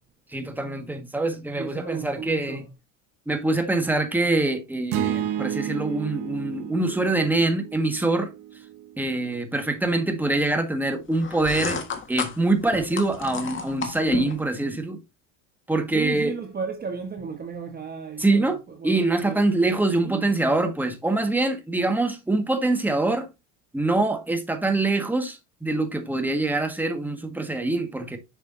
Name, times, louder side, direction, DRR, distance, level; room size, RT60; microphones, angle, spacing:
voice 1, 0.3-2.6 3.3-8.3 9.0-11.8 12.1-15.0 15.7-16.3 18.2-18.6 18.8-23.3 23.7-28.2, right 2 dB, 5° right, 1.6 m, -24 dB
voice 2, 1.6-2.7 15.9-19.4 20.0-20.2, right 5 dB, 25° right, 1.2 m, -34 dB
sound 1, 4.9-9.2, right 10 dB, 60° right, 1.2 m, -31 dB
sound 2, 11.1-14.4, left 5 dB, 30° left, 1.6 m, -32 dB
6.9 x 6.2 x 2.7 m
supercardioid pair, 95°, 40 cm